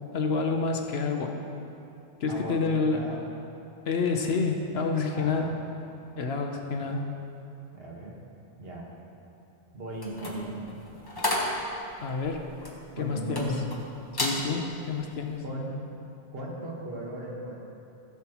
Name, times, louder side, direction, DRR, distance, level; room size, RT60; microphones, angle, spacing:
voice 1, 0.1-1.4 2.2-3.1 3.9-5.7 6.2-7.1 12.0-12.5 13.0-13.5 14.1-15.4, left 4 dB, 65° left, 3 dB, 1.0 m, -28 dB
voice 2, 2.3-3.2 5.1-5.6 6.6-6.7 7.7-8.2 8.6-8.9 9.7-10.7 13.0-13.7 15.4-15.9 16.3-17.6, right 1 dB, 60° right, -3 dB, 1.7 m, -36 dB
sound 1, 9.9-13.8 14.1-14.4 14.9-15.2, left 1 dB, 20° left, 1.2 m, -32 dB
15.5 x 7.1 x 3.0 m, 2.7 s
omnidirectional pair, 1.2 m